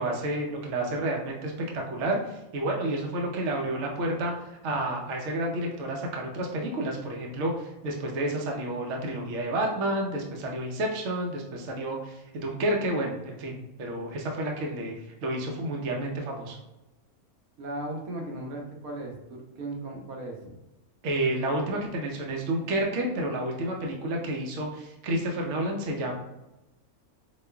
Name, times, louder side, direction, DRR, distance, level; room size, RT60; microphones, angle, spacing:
voice 1, 0.0-16.6 21.0-26.1, right 1 dB, 65° right, 0 dB, 0.9 m, -30 dB
voice 2, 17.6-20.6, right 1 dB, 80° right, 0 dB, 1.2 m, -37 dB
5.0 x 2.3 x 2.2 m, 0.98 s
omnidirectional pair, 1.5 m